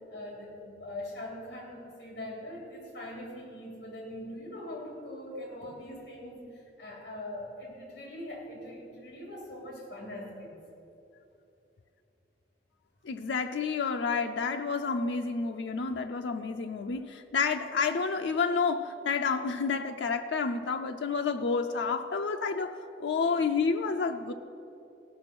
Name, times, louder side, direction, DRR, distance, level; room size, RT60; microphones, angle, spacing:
voice 1, 0.0-6.4 6.8-10.5, left 1 dB, 65° left, -2 dB, 3.1 m, -42 dB
voice 2, 13.0-24.3, left 5 dB, 90° left, 6 dB, 0.5 m, -30 dB
16.5 x 5.9 x 6.0 m, 2.8 s
head